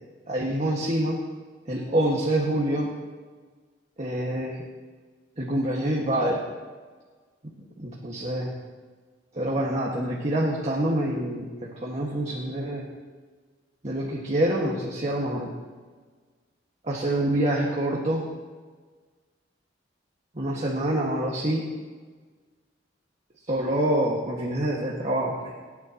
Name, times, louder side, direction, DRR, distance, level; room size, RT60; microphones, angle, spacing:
voice 1, 0.3-1.2 1.7-2.9 4.0-4.6 5.4-6.4 7.8-8.5 9.3-12.9 13.8-15.5 16.8-18.2 20.4-21.7 23.5-25.5, right 1 dB, 35° right, -3 dB, 1.8 m, -26 dB
28.0 x 9.8 x 3.0 m, 1.4 s
head